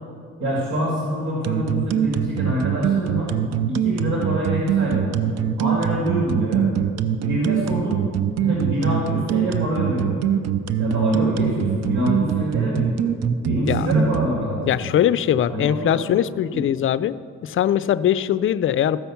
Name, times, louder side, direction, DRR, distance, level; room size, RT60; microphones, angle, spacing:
voice 1, 0.4-3.3 3.7-5.3 5.6-6.7 7.2-8.0 8.4-10.3 10.8-12.9 13.4-14.9 15.5-16.0 16.5-16.6, equal, 85° right, -5 dB, 2.4 m, -25 dB
sound 1, 1.4-14.3, right 10 dB, 60° right, 0.6 m, -22 dB
voice 2, 14.7-17.1 17.4-19.0, left 10 dB, 45° left, 14 dB, 0.4 m, -21 dB
14.0 x 5.7 x 7.0 m, 2.3 s
cardioid pair, 90°, 30 cm